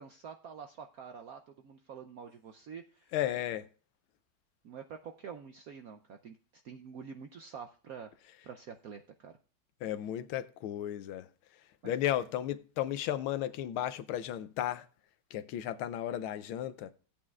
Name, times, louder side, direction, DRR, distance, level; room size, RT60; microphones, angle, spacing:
voice 1, 0.0-3.1 4.6-8.1 8.4-9.3 11.8-11.9, right 6 dB, 75° right, 0.8 m, -47 dB
voice 2, 3.1-3.7 9.8-14.9 15.3-16.9, left 12 dB, 85° left, 1.5 m, -34 dB
16.5 x 8.6 x 2.4 m
omnidirectional pair, 2.2 m